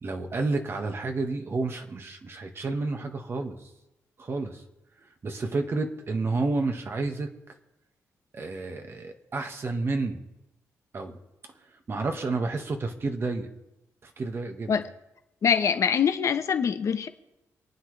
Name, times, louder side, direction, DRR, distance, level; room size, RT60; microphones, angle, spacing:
voice 1, 0.0-3.7 4.2-4.6 5.0-7.3 8.3-10.2 10.9-11.1 11.9-13.5 14.0-14.8, right 3 dB, 45° right, 1.8 m, -30 dB
voice 2, 15.4-17.1, left 7 dB, 60° left, 1.1 m, -24 dB
28.0 x 9.5 x 3.4 m
cardioid pair, 85°, 6 cm